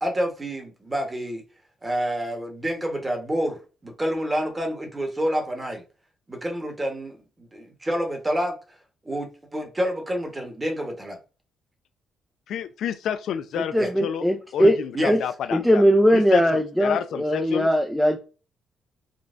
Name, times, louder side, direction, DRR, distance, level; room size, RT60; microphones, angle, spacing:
voice 1, 0.0-1.4 1.8-5.8 6.3-8.5 9.0-11.2 13.8-13.9 14.9-15.2, equal, 20° right, 1.1 m, -28 dB
voice 2, 12.5-14.2 14.5-15.8 16.1-16.4 16.8-17.7, left 9 dB, 75° left, 0.3 m, -30 dB
voice 3, 13.7-14.8 15.1-15.2 15.5-18.2, equal, ahead, 0.4 m, -20 dB
3.7 x 2.3 x 2.5 m
cardioid pair, 90°, 0 cm